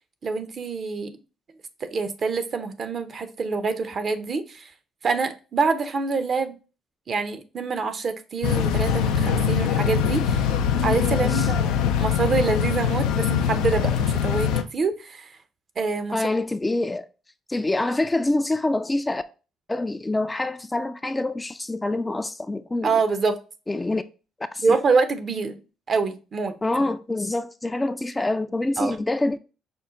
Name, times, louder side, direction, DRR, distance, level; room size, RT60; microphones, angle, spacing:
voice 1, 0.2-1.1 1.8-4.7 5.0-6.6 7.1-10.5 10.8-15.4 15.8-16.2 22.8-23.4 24.6-25.6 25.9-26.6 28.8-29.0, right 4 dB, 50° right, 0.6 m, -26 dB
sound 1, 8.4-14.6, left 8 dB, 85° left, 0.4 m, -23 dB
voice 2, 16.1-17.1 17.5-19.2 19.7-22.9 23.7-24.0 24.5-24.6 26.6-29.4, left 2 dB, 15° left, 0.3 m, -26 dB
5.3 x 2.1 x 3.7 m
supercardioid pair, 75°, 0 cm